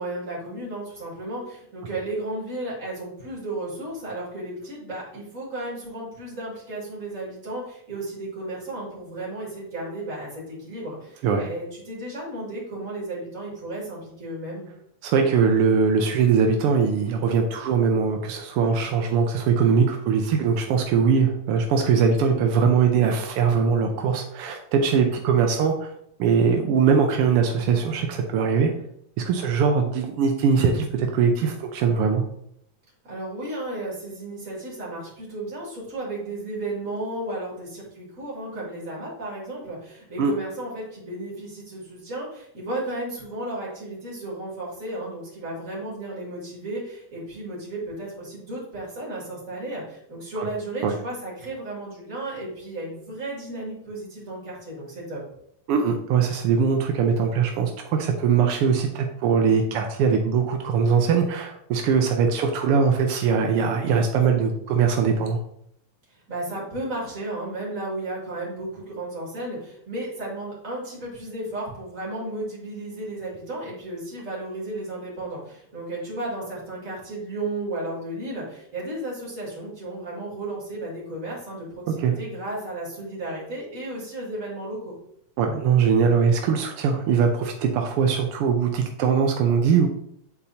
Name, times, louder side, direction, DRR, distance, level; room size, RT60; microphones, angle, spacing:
voice 1, 0.0-14.7 33.0-55.2 66.1-84.9, right 1 dB, 25° right, -6 dB, 2.7 m, -34 dB
voice 2, 15.0-25.9 26.2-28.7 29.2-32.2 40.2-40.3 50.8-50.9 55.7-65.4 81.9-82.1 85.4-89.9, right 6 dB, 85° right, 3 dB, 1.2 m, -21 dB
10.0 x 4.1 x 2.8 m, 0.71 s
omnidirectional pair, 3.4 m